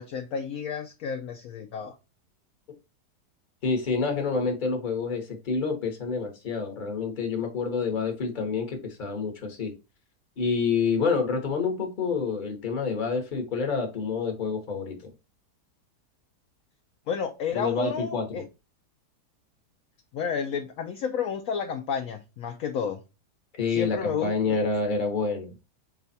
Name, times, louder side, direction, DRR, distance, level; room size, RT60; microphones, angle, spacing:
voice 1, 0.0-2.0 17.1-18.4 20.1-23.0 23.7-24.6, left 7 dB, 70° left, 6 dB, 0.9 m, -31 dB
voice 2, 3.6-9.7 10.4-15.0 17.5-18.4 23.5-25.5, left 4 dB, 35° left, 4 dB, 1.1 m, -28 dB
5.0 x 2.4 x 4.0 m, 0.28 s
omnidirectional pair, 1.8 m